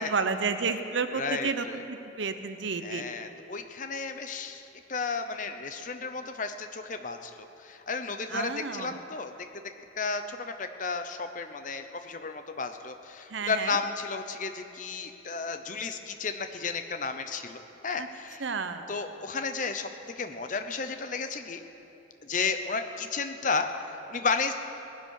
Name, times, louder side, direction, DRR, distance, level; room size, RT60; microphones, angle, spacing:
voice 1, 0.0-3.1 8.3-9.0 13.3-13.8 18.0-18.1 18.4-18.9, right 4 dB, 75° right, 9 dB, 0.8 m, -31 dB
voice 2, 1.1-1.8 2.8-9.3 10.0-18.4 18.9-21.6 22.2-24.5, left 4 dB, 40° left, 8 dB, 0.8 m, -33 dB
18.5 x 10.5 x 6.5 m, 2.9 s
head